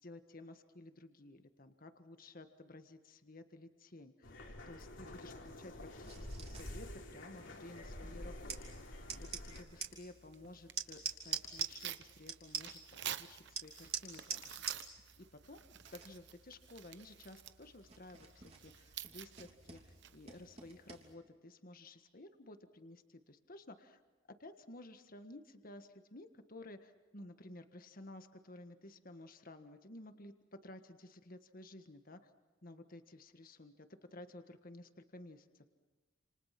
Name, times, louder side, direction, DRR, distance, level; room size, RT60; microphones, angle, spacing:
voice 1, 0.0-4.3 4.7-8.6 9.2-14.9 15.2-15.6 15.9-24.0 24.4-30.3 30.6-32.2 32.6-35.7, left 2 dB, 45° left, 8 dB, 1.6 m, -54 dB
sound 1, 4.2-9.6, left 1 dB, 65° left, 3.5 m, -48 dB
sound 2, 6.0-21.1, right 6 dB, 30° right, 3.3 m, -47 dB
Tearing, 9.7-20.4, right 10 dB, 60° right, 0.9 m, -51 dB
29.5 x 28.0 x 6.0 m, 1.3 s
head